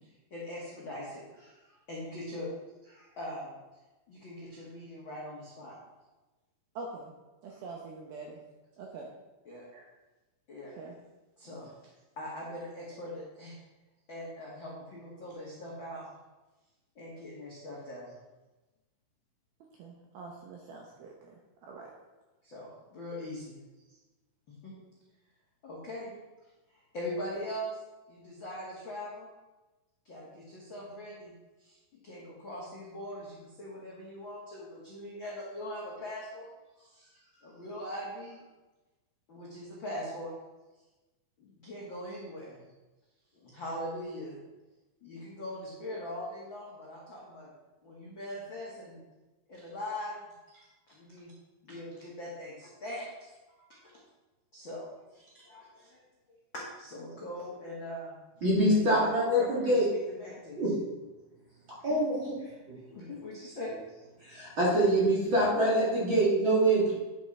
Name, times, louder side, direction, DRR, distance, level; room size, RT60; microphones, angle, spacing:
voice 1, 0.0-2.5 2.8-3.6 4.1-5.8 7.5-7.6 9.4-9.6 10.5-10.7 11.4-11.7 12.1-13.5 14.1-16.1 16.9-18.1 22.4-23.6 23.9-24.0 24.5-24.8 25.6-26.1 26.7-27.8 28.1-29.3 30.0-31.3 31.6-31.8 32.0-38.4 39.3-40.3 41.4-42.6 43.3-44.4 45.0-47.5 47.8-49.0 49.5-51.3 51.6-53.1 53.6-53.9 54.5-56.0 56.5-58.1 58.7-60.7 61.8-62.6 62.9-64.0, left 1 dB, 80° left, -6 dB, 1.0 m, -41 dB
voice 2, 6.8-7.1 7.4-8.4 8.8-9.1 9.7-9.9 10.8-10.9 19.8-21.4 21.6-21.9, right 3 dB, 75° right, 0 dB, 2.2 m, -44 dB
voice 3, 58.4-59.8 60.6-60.7 61.8-62.3 64.3-66.9, right 1 dB, 50° right, -6 dB, 1.4 m, -25 dB
10.5 x 7.5 x 4.3 m, 1.1 s
omnidirectional pair, 5.5 m